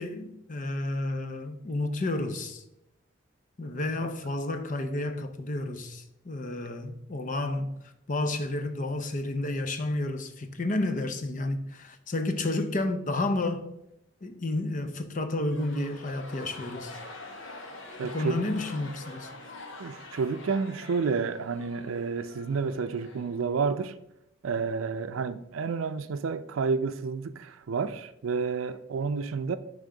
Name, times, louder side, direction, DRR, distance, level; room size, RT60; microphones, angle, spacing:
voice 1, 0.0-2.6 3.6-13.7 14.2-17.0 18.1-19.3, left 2 dB, 40° left, 0.6 m, -31 dB
sound 1, 15.3-23.8, left 2 dB, 75° left, 1.1 m, -45 dB
voice 2, 18.0-18.4 19.8-23.9 24.4-29.6, right 5 dB, 85° right, 0.4 m, -30 dB
9.9 x 3.5 x 3.8 m
head